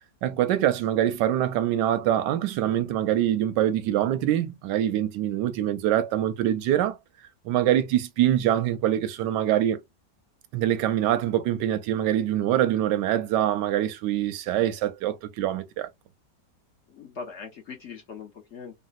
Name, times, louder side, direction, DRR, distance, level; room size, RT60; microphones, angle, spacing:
voice 1, 0.2-7.0 7.4-9.8 10.5-15.9, right 12 dB, 85° right, 1.2 m, -24 dB
voice 2, 16.9-18.7, left 5 dB, 55° left, 0.8 m, -40 dB
4.0 x 2.1 x 2.5 m
omnidirectional pair, 1.9 m